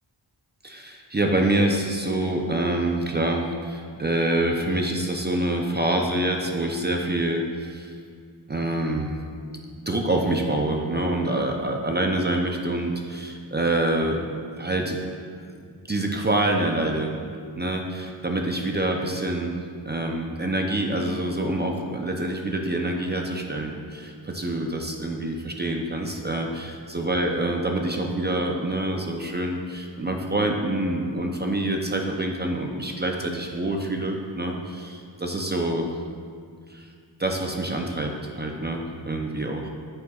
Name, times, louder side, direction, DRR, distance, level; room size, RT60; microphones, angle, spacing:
voice 1, 0.6-7.9 8.5-9.2 9.7-14.2 14.6-15.0 15.9-17.2 17.6-19.6 19.9-35.9 36.7-36.9 37.2-39.7, right 1 dB, 25° right, 1 dB, 0.5 m, -26 dB
8.5 x 7.8 x 2.4 m, 2.1 s
wide cardioid pair, 125°, 45 cm